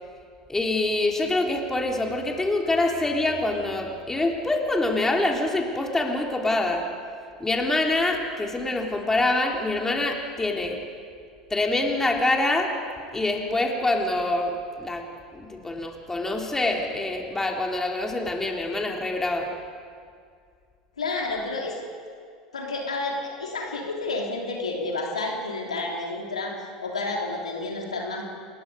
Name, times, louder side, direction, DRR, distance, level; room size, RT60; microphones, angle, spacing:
voice 1, 0.5-6.8 7.4-10.8 11.5-12.7 13.1-15.0 15.3-19.5, left 2 dB, 10° left, 1 dB, 3.4 m, -25 dB
voice 2, 21.0-21.8 22.5-26.5 26.8-28.2, left 3 dB, 80° left, -1 dB, 3.3 m, -30 dB
28.5 x 20.5 x 5.2 m, 2.1 s
figure-of-eight pair, 75°, 4 cm